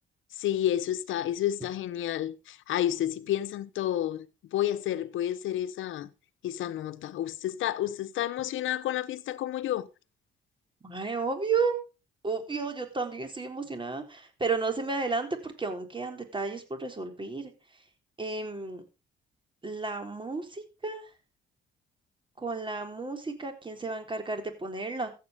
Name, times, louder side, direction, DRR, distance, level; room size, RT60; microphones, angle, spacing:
voice 1, 0.4-6.1 6.4-9.9, left 12 dB, 80° left, 1.1 m, -30 dB
voice 2, 10.8-11.8 12.2-17.5 18.2-18.8 19.6-21.1 22.4-25.1, right 4 dB, 25° right, 4.0 m, -32 dB
14.5 x 8.5 x 5.2 m
cardioid pair, 90°, 20 cm